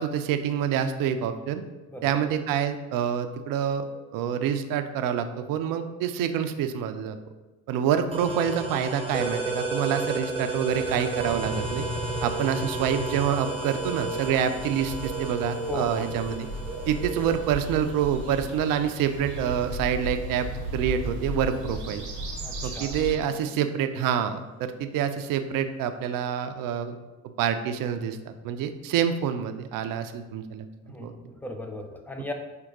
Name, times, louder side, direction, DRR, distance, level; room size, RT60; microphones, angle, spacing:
voice 1, 0.0-1.6 2.0-7.2 7.7-11.9 12.2-16.5 16.9-20.5 20.7-22.0 22.6-27.0 27.2-30.7 31.0-31.1, right 8 dB, 50° right, 9 dB, 0.5 m, -27 dB
voice 2, 1.9-2.2 15.7-16.1 22.4-23.0 30.9-32.3, left 1 dB, 5° left, 4 dB, 0.4 m, -37 dB
sound 1, 8.1-19.5, right 2 dB, 15° right, 0.8 m, -33 dB
sound 2, 10.7-23.2, right 2 dB, 85° right, 0.8 m, -36 dB
4.4 x 2.3 x 3.9 m, 1.1 s
hypercardioid pair, 55°, 44 cm